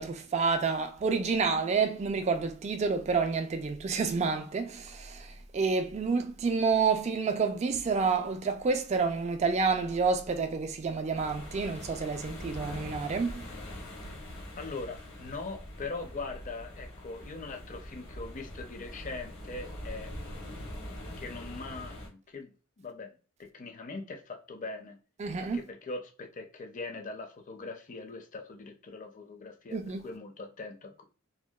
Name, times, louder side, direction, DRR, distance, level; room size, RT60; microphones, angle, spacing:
voice 1, 0.0-13.4 25.2-25.6 29.7-30.0, right 4 dB, 30° right, 0.3 m, -29 dB
sound 1, 11.1-22.1, left 1 dB, 80° left, 1.0 m, -43 dB
voice 2, 14.6-20.1 21.2-22.5 22.8-23.1 23.5-25.0 25.4-31.0, left 3 dB, 40° left, 0.5 m, -41 dB
2.7 x 2.2 x 2.2 m
head